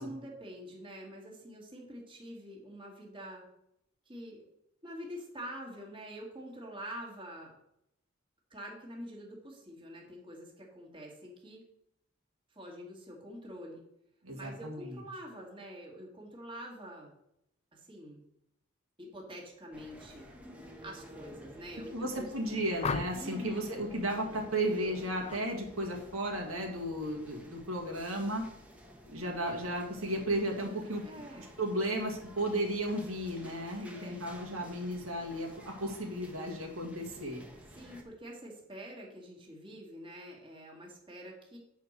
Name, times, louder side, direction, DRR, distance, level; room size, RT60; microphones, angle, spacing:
voice 1, 0.0-3.5 4.1-4.5 4.8-7.5 8.5-11.6 12.5-13.8 14.3-17.1 17.7-18.2 19.0-20.3 20.8-22.5 23.1-23.9 31.0-31.5 33.9-34.2 37.7-41.6, equal, 25° right, -2 dB, 2.0 m, -46 dB
voice 2, 14.2-15.0 21.9-28.4 29.1-31.0 31.6-37.4, right 1 dB, 90° right, 0 dB, 2.1 m, -34 dB
sound 1, 19.7-38.0, equal, 5° right, 1.2 m, -52 dB
sound 2, 22.8-23.4 25.2-25.5 25.8-26.2, left 5 dB, 30° left, 0.3 m, -36 dB
8.3 x 4.6 x 6.5 m, 0.79 s
head